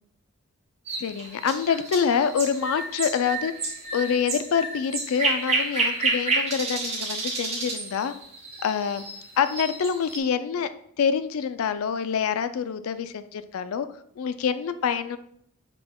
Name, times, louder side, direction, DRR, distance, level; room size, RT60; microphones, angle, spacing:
sound 1, 0.9-10.2, right 3 dB, 30° right, 0.8 m, -30 dB
voice 1, 1.0-3.5 3.9-8.1 8.6-9.0 9.4-10.7 11.0-13.9 14.2-15.2, left 7 dB, 75° left, 0.3 m, -26 dB
5.9 x 3.5 x 2.3 m
head